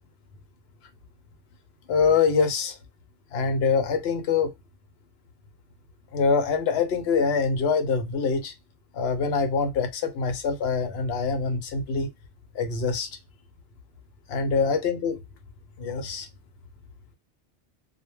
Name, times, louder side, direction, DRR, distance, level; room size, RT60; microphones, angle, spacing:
voice 1, 1.9-2.8 3.3-4.5 6.1-8.5 8.9-12.1 12.5-13.1 14.3-15.1 15.8-16.3, left 5 dB, 65° left, 0.8 m, -24 dB
2.2 x 2.2 x 3.1 m
omnidirectional pair, 1.2 m